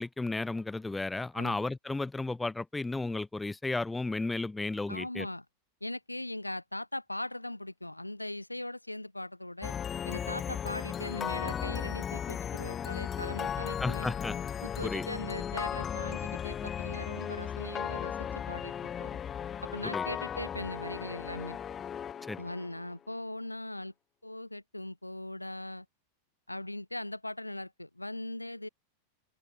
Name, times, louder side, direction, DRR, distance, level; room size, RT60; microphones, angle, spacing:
voice 1, 0.0-5.3 13.8-14.3 14.8-15.1 19.8-20.1 22.2-22.4, left 2 dB, 10° left, 0.7 m, -33 dB
voice 2, 4.9-5.4 5.8-9.7 10.0-14.2 14.6-19.2 19.6-21.6 22.4-23.9 24.2-25.9 26.5-28.7, left 1 dB, 85° left, 1.3 m, -40 dB
sound 1, 9.6-22.9, left 8 dB, 25° left, 1.6 m, -36 dB
open air
figure-of-eight pair, 90°, 0 cm